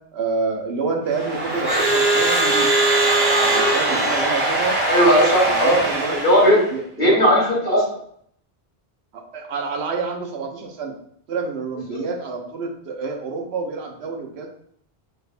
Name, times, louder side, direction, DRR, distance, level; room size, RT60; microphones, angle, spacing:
voice 1, 0.1-2.7 3.4-4.8 5.5-6.2 6.7-7.3 9.1-10.9 11.3-14.5, right 4 dB, 80° right, 1 dB, 0.9 m, -28 dB
Crowd / Alarm, 1.1-6.7, right 2 dB, 40° right, 1.4 m, -20 dB
voice 2, 4.8-5.8 6.1-6.6 7.0-7.8 11.9-12.0, equal, 60° left, -6 dB, 1.7 m, -17 dB
3.5 x 3.2 x 2.4 m, 0.65 s
omnidirectional pair, 1.1 m